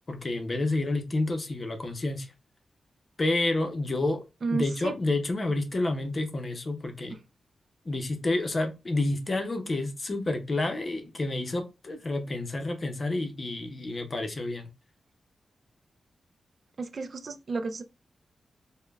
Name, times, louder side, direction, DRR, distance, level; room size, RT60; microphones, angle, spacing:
voice 1, 0.1-2.3 3.2-4.2 4.5-7.2 7.8-14.7, left 2 dB, 35° left, 0.6 m, -29 dB
voice 2, 4.4-4.9 7.1-7.2 16.8-17.8, right 4 dB, 50° right, 0.4 m, -32 dB
5.1 x 2.1 x 2.3 m
wide cardioid pair, 125°, 0 cm